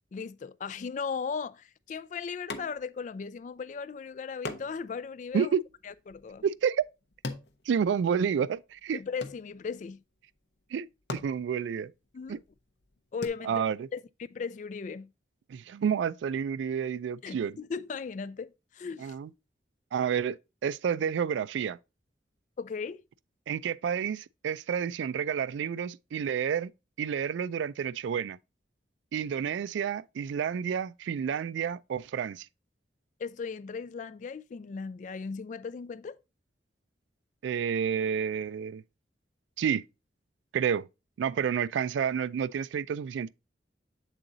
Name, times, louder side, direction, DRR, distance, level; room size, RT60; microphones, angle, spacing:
voice 1, 0.1-5.5 5.8-6.4 8.9-10.0 12.1-12.4 13.1-15.1 17.2-19.1 22.6-23.0 33.2-36.2, left 5 dB, 45° left, 0.3 m, -37 dB
sound 1, 2.5-3.1 3.4-3.5 4.4-8.4 8.7-9.9 10.6-10.7 11.0-13.3, left 2 dB, 65° left, 0.7 m, -42 dB
voice 2, 6.4-6.8 7.7-9.0 10.7-11.9 12.3-12.4 13.4-13.9 15.5-17.6 19.0-19.3 19.9-21.8 23.5-26.7 27.0-28.4 29.1-32.5 37.4-38.8 39.6-39.8 40.5-40.9 41.2-43.3, right 7 dB, 85° right, 0.3 m, -30 dB
7.4 x 3.8 x 3.8 m
head